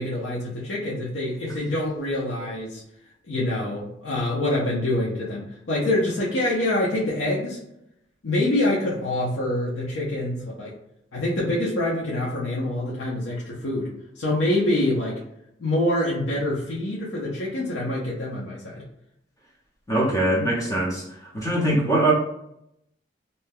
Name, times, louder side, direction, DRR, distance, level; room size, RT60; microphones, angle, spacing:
voice 1, 0.0-2.8 3.3-7.6 8.2-10.7 11.1-15.2 15.6-18.8, left 1 dB, 80° left, -6 dB, 0.7 m, -26 dB
voice 2, 19.9-21.0 21.3-22.1, right 1 dB, 20° left, -4 dB, 0.8 m, -22 dB
2.8 x 2.2 x 3.4 m, 0.78 s
head